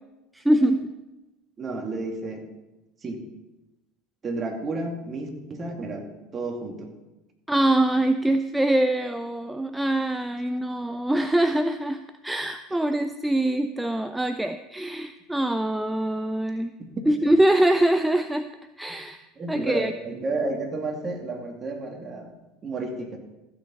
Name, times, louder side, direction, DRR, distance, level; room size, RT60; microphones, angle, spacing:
voice 1, 0.3-0.8 7.5-16.7 17.1-18.5 18.8-19.2 19.5-19.9, right 1 dB, 5° right, 9 dB, 0.5 m, -23 dB
voice 2, 1.6-2.5 3.0-3.2 4.2-6.9 16.8-16.9 19.4-22.3 22.6-23.2, right 3 dB, 30° right, 2 dB, 2.5 m, -31 dB
15.0 x 8.5 x 4.2 m, 1.0 s
figure-of-eight pair, 75°, 0 cm